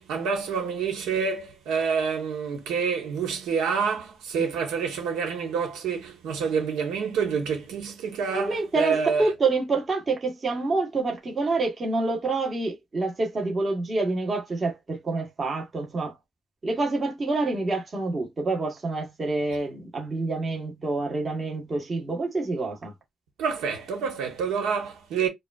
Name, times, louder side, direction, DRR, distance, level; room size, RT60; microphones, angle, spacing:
voice 1, 0.0-9.3 23.4-25.3, right 6 dB, 90° right, 1.4 m, -27 dB
voice 2, 8.3-16.2 16.6-22.9, right 3 dB, 35° right, 1.3 m, -27 dB
4.9 x 2.4 x 2.5 m
cardioid pair, 90°, 0 cm